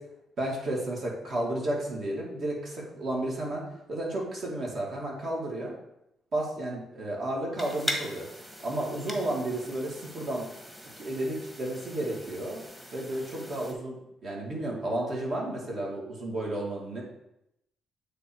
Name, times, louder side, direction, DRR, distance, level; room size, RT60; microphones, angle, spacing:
voice 1, 0.4-3.6 3.9-5.8 6.3-10.5 11.0-12.6 12.9-17.0, right 1 dB, 55° right, -2 dB, 2.3 m, -32 dB
sound 1, 7.6-13.7, equal, 15° right, 1.4 m, -40 dB
8.2 x 3.7 x 4.6 m, 0.83 s
cardioid pair, 90°, 0 cm